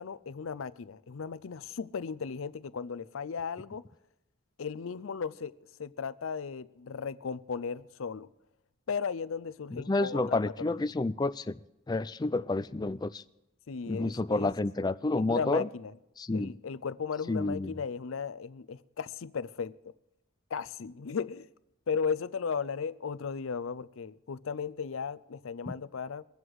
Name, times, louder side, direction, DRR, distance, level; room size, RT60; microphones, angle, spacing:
voice 1, 0.0-3.8 4.6-5.5 5.8-8.3 8.9-10.9 13.7-14.5 15.2-15.9 16.3-19.9 20.5-21.5 21.9-26.2, left 6 dB, 80° left, 0.5 m, -36 dB
voice 2, 9.7-11.5 11.9-13.2 13.9-15.7 16.2-16.5 17.3-17.8 25.7-25.8, left 2 dB, 20° left, 0.4 m, -30 dB
22.5 x 8.0 x 4.7 m
head